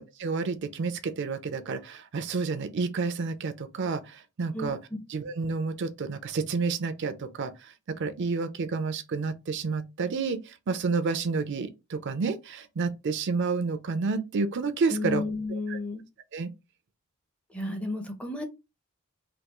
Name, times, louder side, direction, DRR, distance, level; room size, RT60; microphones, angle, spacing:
voice 1, 0.0-4.8 5.1-15.2 15.5-15.8 16.3-16.5, right 4 dB, 50° right, 0.4 m, -30 dB
voice 2, 14.9-16.0 17.5-18.4, left 2 dB, 5° left, 0.5 m, -32 dB
3.4 x 2.3 x 2.9 m
head